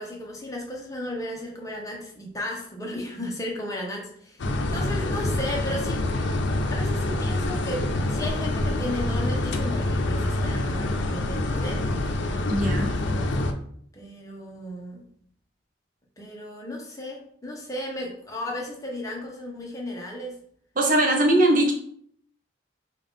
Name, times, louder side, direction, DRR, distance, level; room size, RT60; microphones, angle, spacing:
voice 1, 0.0-6.0 6.7-11.9 13.9-15.1 16.2-20.4, left 1 dB, 20° left, -1 dB, 0.8 m, -35 dB
sound 1, 4.4-13.5, left 1 dB, 85° left, 0.5 m, -26 dB
voice 2, 12.5-12.9 20.8-21.7, right 1 dB, 45° right, 1 dB, 0.7 m, -20 dB
5.4 x 2.4 x 3.6 m, 0.63 s
head